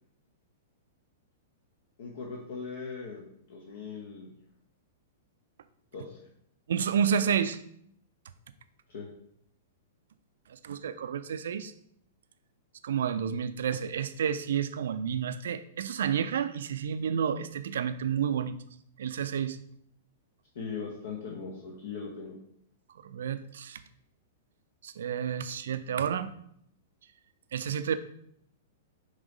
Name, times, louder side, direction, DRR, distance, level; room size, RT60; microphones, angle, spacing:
voice 1, 2.0-4.3 5.9-6.2 8.9-9.1 20.5-22.3, left 5 dB, 55° left, -1 dB, 1.0 m, -39 dB
voice 2, 6.7-7.6 10.5-11.7 12.8-18.6 19.0-19.6 23.0-23.8 24.8-26.3 27.5-28.0, right 8 dB, 60° right, 12 dB, 0.4 m, -30 dB
6.0 x 3.0 x 5.1 m, 0.69 s
figure-of-eight pair, 105°, 0 cm